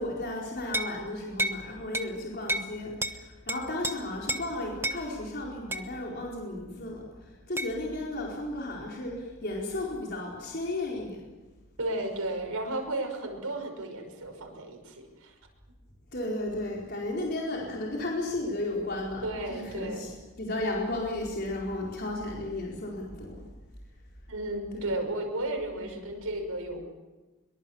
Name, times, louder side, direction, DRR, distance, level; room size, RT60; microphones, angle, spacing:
voice 1, 0.0-11.2 16.1-23.4 24.7-24.9 25.7-26.0, left 2 dB, 45° left, -3 dB, 4.4 m, -34 dB
sound 1, 0.7-1.0 1.4-1.6 1.9-2.1 2.5-2.7 3.0-3.2 3.5-3.9 4.3-4.5 4.8-5.0 5.7-5.9 7.6-7.7, right 1 dB, 10° right, 1.0 m, -30 dB
voice 2, 11.8-15.3 19.2-20.0 24.3-26.8, right 1 dB, 90° right, 3 dB, 5.8 m, -33 dB
24.0 x 23.5 x 7.2 m, 1.2 s
head